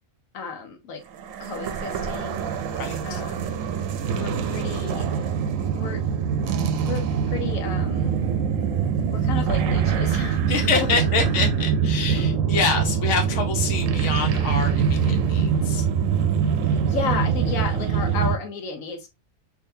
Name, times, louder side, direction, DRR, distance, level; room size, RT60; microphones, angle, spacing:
voice 1, 0.3-1.0 1.4-2.5 3.0-3.6 4.2-5.1 5.7-6.0 6.8-8.2 9.1-11.0 12.2-12.4 16.6-19.1, left 5 dB, 90° left, 4 dB, 1.2 m, -33 dB
sound 1, 1.2-18.4, right 7 dB, 80° right, 1.0 m, -24 dB
voice 2, 2.7-3.2 10.5-15.9, left 5 dB, 65° left, 3 dB, 1.2 m, -26 dB
3.6 x 2.8 x 2.6 m, 0.22 s
omnidirectional pair, 1.4 m